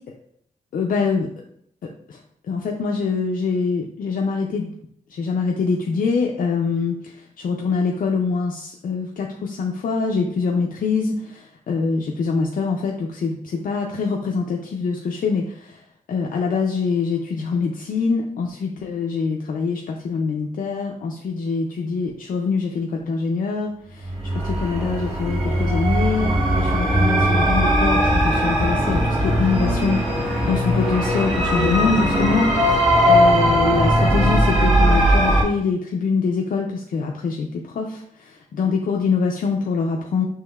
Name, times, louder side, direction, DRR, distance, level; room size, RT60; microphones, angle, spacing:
voice 1, 0.7-1.3 2.1-2.2 2.4-4.7 5.1-15.8 16.1-40.3, left 4 dB, 70° left, 1 dB, 0.5 m, -24 dB
sound 1, 24.0-35.4, equal, 40° right, 1.5 m, -19 dB
6.3 x 3.0 x 2.3 m, 0.69 s
wide cardioid pair, 145°, 15 cm